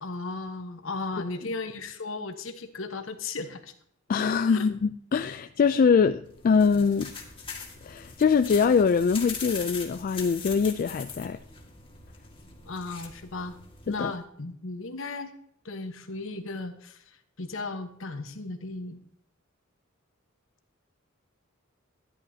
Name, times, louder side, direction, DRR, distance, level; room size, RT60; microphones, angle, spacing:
voice 1, 0.0-3.7 4.5-4.7 12.6-13.6 13.8-15.4 15.6-17.0 17.4-19.0, left 3 dB, 65° left, 1.1 m, -36 dB
voice 2, 4.1-7.1 7.8-11.4 13.9-14.1, left 5 dB, 40° left, 0.3 m, -23 dB
sound 1, 6.3-14.2, left 5 dB, 25° left, 1.9 m, -41 dB
13.5 x 10.5 x 2.8 m
head